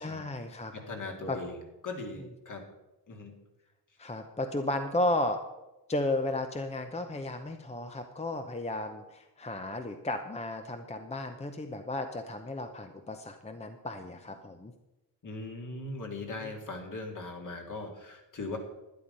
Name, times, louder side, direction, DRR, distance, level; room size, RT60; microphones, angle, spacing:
voice 1, 0.0-0.7 1.3-1.4 4.0-5.4 5.9-14.7 16.4-16.5, left 1 dB, 15° left, 6 dB, 0.7 m, -34 dB
voice 2, 0.7-2.6 3.1-3.3 15.2-18.6, left 3 dB, 50° left, 2 dB, 2.5 m, -39 dB
12.0 x 9.9 x 5.4 m, 1.0 s
wide cardioid pair, 120°, 40 cm